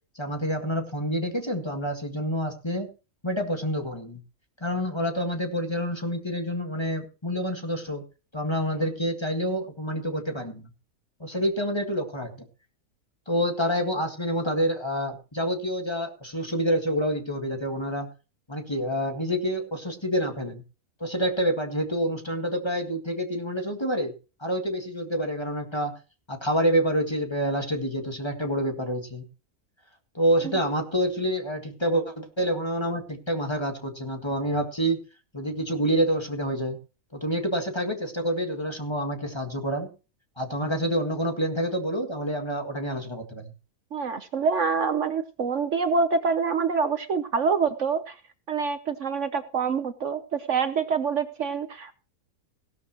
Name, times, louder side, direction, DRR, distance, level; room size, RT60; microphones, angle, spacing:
voice 1, 0.2-2.9 3.2-4.2 4.6-8.0 8.3-10.7 11.2-12.3 13.3-18.1 18.5-20.6 21.0-24.1 24.4-26.0 26.3-29.3 30.1-35.0 35.3-36.8 37.1-39.9 40.4-43.5, equal, 20° left, 4 dB, 1.8 m, -27 dB
voice 2, 43.9-48.1 48.5-51.9, right 5 dB, 60° right, 10 dB, 1.1 m, -26 dB
16.5 x 12.5 x 3.0 m, 0.32 s
omnidirectional pair, 1.6 m